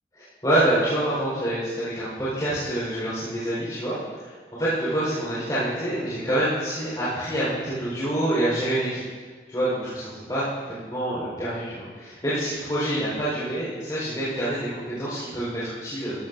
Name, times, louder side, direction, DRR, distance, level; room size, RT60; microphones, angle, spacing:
voice 1, 0.2-9.0 9.5-16.2, right 1 dB, 20° left, -10 dB, 4.3 m, -27 dB
15.0 x 14.0 x 2.6 m, 1.5 s
head